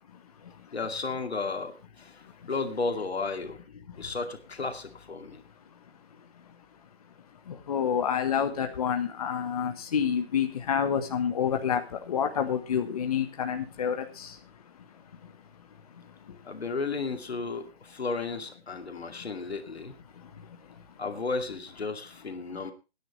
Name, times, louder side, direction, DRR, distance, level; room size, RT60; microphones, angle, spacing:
voice 1, 0.1-0.8 2.2-2.5 3.9-4.0 5.7-5.8 6.2-6.6 7.3-16.5 19.1-19.3 20.1-21.0 22.5-22.6, left 8 dB, 35° left, 1.4 m, -30 dB
voice 2, 0.7-3.6 4.0-5.4 16.4-19.9 21.0-22.7, left 4 dB, 90° left, 2.5 m, -33 dB
19.0 x 10.0 x 3.3 m
hypercardioid pair, 165°, 31 cm